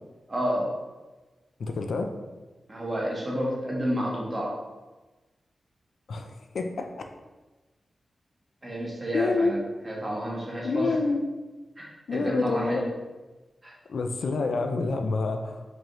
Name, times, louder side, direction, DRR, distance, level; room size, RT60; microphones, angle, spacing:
voice 1, 0.3-0.7 2.7-4.5 8.6-11.0 11.8-12.8 13.6-13.7, equal, 25° right, -4 dB, 1.0 m, -30 dB
voice 2, 1.6-2.1 6.1-6.9 9.1-9.5 10.6-11.2 12.1-12.8 13.9-15.6, left 3 dB, 75° left, 5 dB, 0.4 m, -27 dB
4.6 x 2.6 x 3.0 m, 1.2 s
wide cardioid pair, 110°, 0 cm